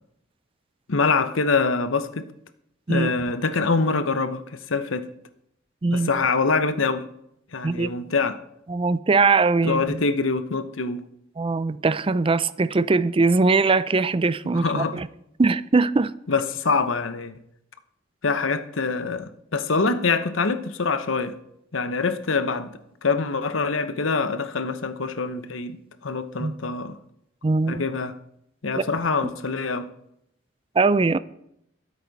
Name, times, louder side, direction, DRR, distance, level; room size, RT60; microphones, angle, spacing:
voice 1, 0.9-2.3 2.9-5.1 5.9-7.1 7.5-8.4 9.6-11.1 14.5-15.0 16.3-17.3 18.2-21.4 21.7-22.7 23.0-27.0 27.7-28.1 28.6-29.9, left 4 dB, 85° left, 1.0 m, -25 dB
voice 2, 8.7-10.0 11.4-15.1 15.4-16.1 26.4-26.5 27.4-27.8 28.8-28.9 30.8-31.2, right 3 dB, 30° right, 0.5 m, -21 dB
23.0 x 8.3 x 4.1 m
head